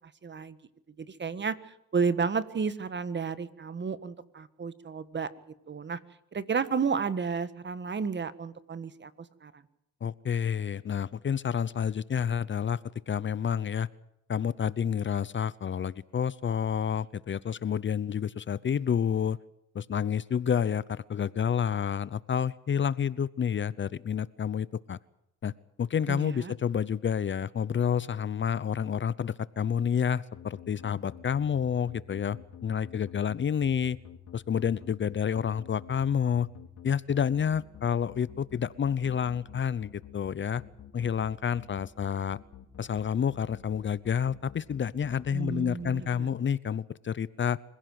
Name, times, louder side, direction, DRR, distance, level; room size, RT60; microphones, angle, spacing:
voice 1, 0.2-0.6 1.0-5.3 5.7-6.0 6.3-9.6 26.1-26.5 45.3-46.3, right 5 dB, 35° right, 14 dB, 1.6 m, -32 dB
voice 2, 10.0-12.8 13.1-13.9 14.3-19.4 19.7-25.0 25.4-25.5 25.8-34.0 34.3-36.5 36.8-40.6 40.9-42.4 42.8-47.6, left 8 dB, 40° left, 19 dB, 0.8 m, -29 dB
sound 1, 30.4-45.9, left 9 dB, 70° left, 4.2 m, -48 dB
25.5 x 16.5 x 7.9 m, 0.81 s
cardioid pair, 90°, 30 cm